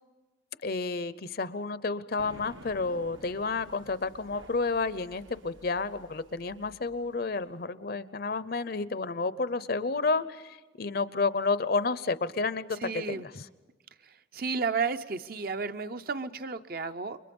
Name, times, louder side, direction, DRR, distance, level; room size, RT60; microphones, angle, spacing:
voice 1, 0.6-13.4, left 3 dB, 50° left, 0.7 m, -31 dB
sound 1, 2.2-7.5, right 1 dB, 75° right, 1.4 m, -52 dB
voice 2, 12.8-13.3 14.0-17.2, right 4 dB, 45° right, 0.7 m, -32 dB
29.5 x 23.0 x 5.4 m
head